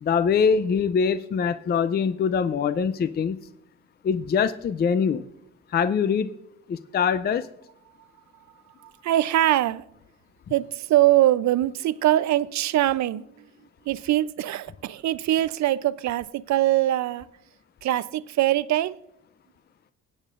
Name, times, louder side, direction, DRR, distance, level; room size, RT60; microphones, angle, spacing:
voice 1, 0.0-3.4 4.0-5.3 5.7-6.3 6.7-7.5, left 6 dB, 35° left, 0.4 m, -23 dB
voice 2, 8.8-9.8 10.5-13.4 13.9-17.3 17.8-19.0, right 14 dB, 65° right, 0.6 m, -23 dB
19.5 x 8.8 x 2.5 m
cardioid pair, 90°, 30 cm